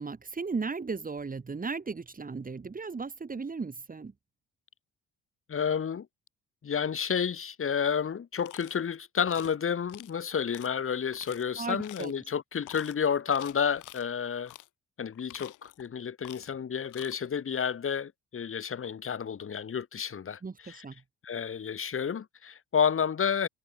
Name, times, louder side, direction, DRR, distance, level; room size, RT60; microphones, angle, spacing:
voice 1, 0.0-4.1 11.6-12.1 20.4-21.0, right 4 dB, 30° right, 2.3 m, -36 dB
voice 2, 5.5-6.1 6.6-14.5 15.0-20.8 21.2-23.5, left 7 dB, 45° left, 2.6 m, -30 dB
sound 1, 8.4-8.8 9.3-9.6 9.9-10.1 10.5-10.7 11.1-11.4 11.8-12.2 12.6-12.9 13.3-14.0 14.5-14.7 15.1-15.9 16.2-16.6 16.8-17.2, left 15 dB, 90° left, 4.0 m, -48 dB
cardioid pair, 90°, 30 cm